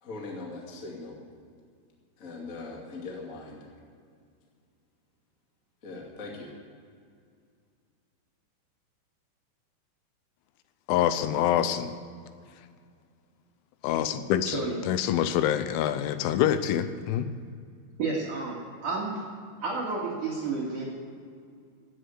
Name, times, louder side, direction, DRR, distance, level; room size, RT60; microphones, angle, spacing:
voice 1, 0.0-1.2 2.2-3.7 5.8-6.5, left 3 dB, 40° left, -2 dB, 1.1 m, -40 dB
voice 2, 10.9-11.9 13.8-17.3, left 10 dB, 85° left, 11 dB, 2.9 m, -26 dB
voice 3, 18.0-19.2 19.6-20.8, right 3 dB, 55° right, -3 dB, 2.5 m, -31 dB
16.0 x 8.0 x 8.1 m, 2.2 s
omnidirectional pair, 5.8 m